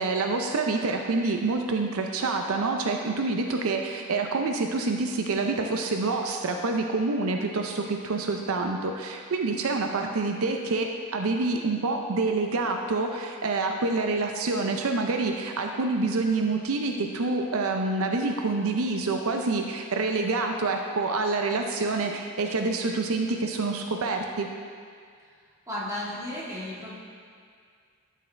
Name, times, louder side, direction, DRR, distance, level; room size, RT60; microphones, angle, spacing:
voice 1, 0.0-24.5, right 3 dB, 75° right, 3 dB, 0.5 m, -27 dB
voice 2, 25.7-26.9, left 1 dB, 15° right, -7 dB, 1.7 m, -34 dB
12.5 x 6.5 x 3.3 m, 2.1 s
head